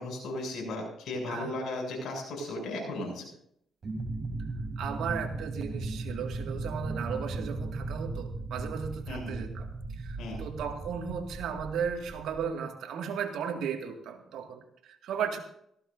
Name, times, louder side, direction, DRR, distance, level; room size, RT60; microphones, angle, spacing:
voice 1, 0.0-3.3 9.1-9.4 10.2-10.4, left 2 dB, 75° left, 1 dB, 7.2 m, -36 dB
voice 2, 1.3-1.6 4.8-15.4, right 7 dB, 80° right, 4 dB, 2.1 m, -35 dB
sound 1, 3.8-12.4, right 2 dB, 40° right, 2.8 m, -37 dB
18.5 x 15.5 x 2.7 m, 0.71 s
cardioid pair, 90°, 0 cm